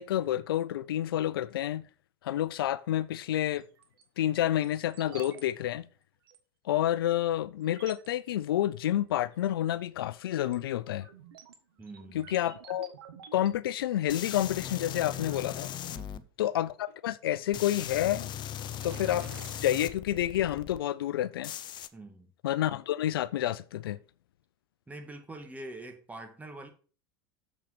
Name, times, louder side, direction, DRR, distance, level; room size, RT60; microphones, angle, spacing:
voice 1, 0.0-1.8 2.2-3.6 4.2-5.9 6.7-11.1 12.1-12.9 13.3-15.7 16.4-18.3 18.8-19.3 19.6-21.5 22.4-24.0, left 12 dB, 90° left, 0.5 m, -29 dB
sound 1, 3.6-4.0 4.6-5.4 5.7-5.8 6.3-6.4 7.1-7.2 7.6-8.1 9.3-9.7 10.1-16.0 17.6-18.0 18.4-20.0, right 7 dB, 90° right, 1.5 m, -51 dB
voice 2, 11.8-12.4 15.9-16.3 21.9-22.3 24.9-26.7, right 2 dB, 15° right, 2.2 m, -45 dB
sound 2, 14.1-16.2 17.5-20.8 21.4-21.9, left 10 dB, 40° left, 0.7 m, -38 dB
7.3 x 5.9 x 5.9 m
hypercardioid pair, 100°, 12 cm